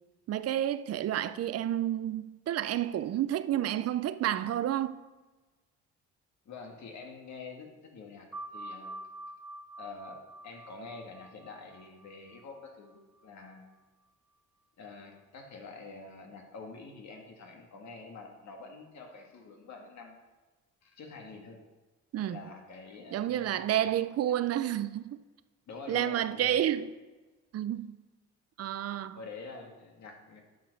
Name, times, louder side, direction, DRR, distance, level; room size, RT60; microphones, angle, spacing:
voice 1, 0.3-5.0 22.1-22.4 23.1-25.2 25.9-26.9 27.5-28.0 28.6-29.2, right 11 dB, 55° right, 0.5 m, -30 dB
voice 2, 6.4-8.9 9.8-13.7 14.8-20.3 20.8-21.6 22.3-23.9 24.3-24.4 25.7-26.6 29.1-30.4, left 4 dB, 65° left, 1.8 m, -47 dB
sound 1, 8.3-13.5, right 1 dB, 5° right, 1.0 m, -47 dB
8.9 x 5.2 x 6.3 m
cardioid pair, 90°, 30 cm